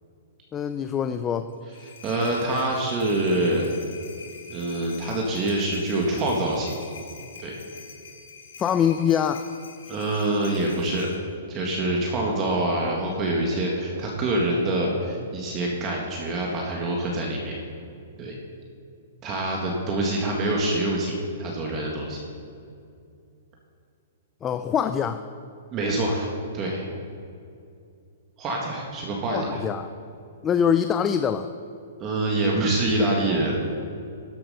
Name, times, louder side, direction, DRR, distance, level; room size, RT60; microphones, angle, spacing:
voice 1, 0.5-1.5 8.6-9.5 24.4-25.2 29.3-29.9 30.4-31.5, left 8 dB, 20° left, 10 dB, 0.4 m, -24 dB
sound 1, 1.5-11.2, left 5 dB, 80° left, 2.5 m, -45 dB
voice 2, 2.0-3.6 4.5-6.7 7.4-7.6 9.9-11.1 11.5-17.5 18.2-18.4 19.2-22.2 25.7-26.3 26.5-26.8 28.4-29.6 32.0-33.5, right 2 dB, 30° right, -1 dB, 1.7 m, -25 dB
13.0 x 7.6 x 5.5 m, 2.5 s
hypercardioid pair, 135°, 0 cm